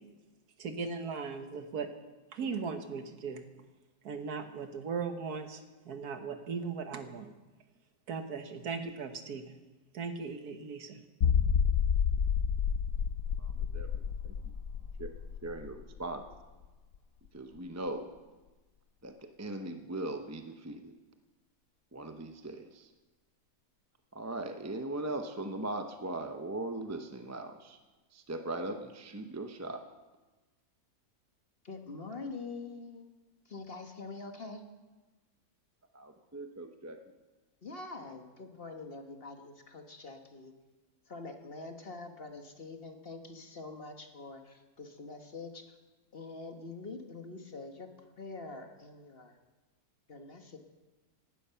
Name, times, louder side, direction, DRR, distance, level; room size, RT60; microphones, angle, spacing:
voice 1, 0.6-1.9 2.3-3.5 4.0-7.3 8.1-9.6 9.9-11.0, right 5 dB, 75° right, 8 dB, 1.7 m, -38 dB
sound 1, 11.2-16.6 16.9-17.0 17.6-17.7, left 7 dB, 65° left, 1.1 m, -30 dB
voice 2, 13.4-14.3 15.0-15.1 15.4-16.2 17.3-18.1 19.0-20.9 21.9-22.9 24.1-27.8 28.1-29.8 35.9-37.0, right 2 dB, 15° right, 6 dB, 0.5 m, -39 dB
voice 3, 31.6-33.1 33.4-34.6 37.6-40.5 41.1-45.8 46.1-47.9 48.2-49.4 50.1-50.6, left 3 dB, 40° left, 5 dB, 1.4 m, -45 dB
17.5 x 12.5 x 5.7 m, 1.2 s
omnidirectional pair, 1.6 m